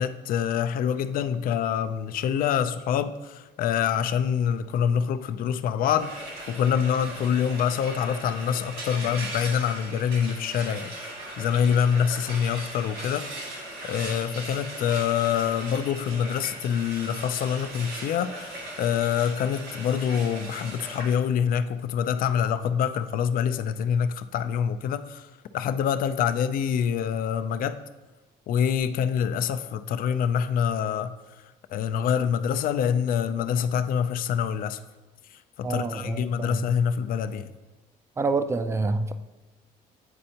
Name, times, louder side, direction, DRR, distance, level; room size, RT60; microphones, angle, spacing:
voice 1, 0.0-10.9 11.4-13.3 13.8-27.8 28.5-31.1 31.7-34.8 35.6-37.5, left 8 dB, 60° left, 0.4 m, -26 dB
Frying (food), 6.0-21.1, right 1 dB, 75° right, 2.1 m, -38 dB
voice 2, 35.6-36.7 38.2-39.1, right 3 dB, 15° right, 0.4 m, -27 dB
8.8 x 4.3 x 2.8 m
cardioid pair, 110°, 17 cm